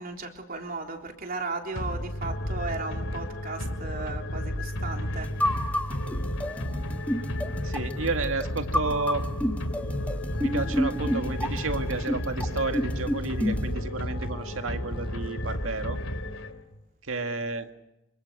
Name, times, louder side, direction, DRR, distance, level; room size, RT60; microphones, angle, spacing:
voice 1, 0.0-5.5, right 3 dB, 45° right, 3 dB, 3.5 m, -36 dB
sound 1, 1.7-16.8, left 1 dB, 90° left, 2.7 m, -33 dB
sound 2, 5.2-13.7, equal, 5° left, 1.4 m, -30 dB
voice 2, 7.6-9.3 10.4-16.0 17.1-17.7, right 3 dB, 85° right, 7 dB, 2.1 m, -31 dB
sound 3, 11.0-16.0, equal, 25° right, 4.1 m, -44 dB
26.0 x 24.5 x 6.5 m, 0.88 s
head